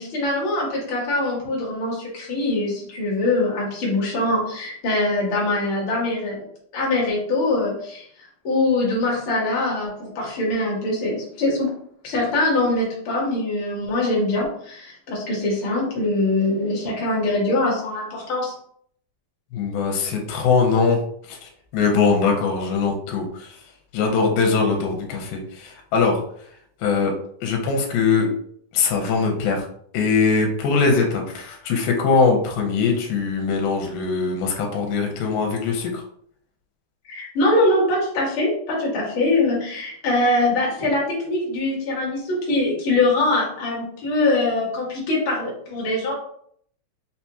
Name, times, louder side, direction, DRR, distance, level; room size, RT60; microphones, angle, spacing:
voice 1, 0.0-6.4 6.7-8.1 8.4-11.7 12.0-18.5 37.0-46.1, left 2 dB, 65° left, -3 dB, 1.2 m, -23 dB
voice 2, 19.5-21.0 21.3-23.6 23.9-26.2 26.8-27.1 27.4-28.3 28.7-29.7 29.9-36.0, left 4 dB, 85° left, 2 dB, 2.4 m, -21 dB
5.6 x 2.3 x 2.8 m, 0.63 s
omnidirectional pair, 4.1 m